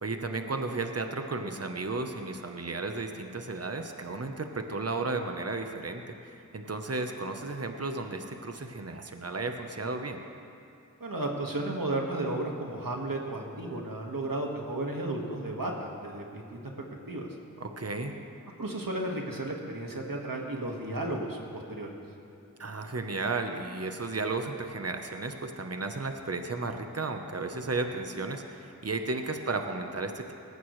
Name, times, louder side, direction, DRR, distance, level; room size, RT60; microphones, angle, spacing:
voice 1, 0.0-10.2 17.6-18.2 22.6-30.3, right 3 dB, 45° right, 5 dB, 1.0 m, -34 dB
voice 2, 11.0-16.6 17.1-17.3 18.6-21.9, right 2 dB, 75° right, 0 dB, 1.8 m, -33 dB
19.0 x 14.5 x 3.2 m, 2.7 s
wide cardioid pair, 40°, 34 cm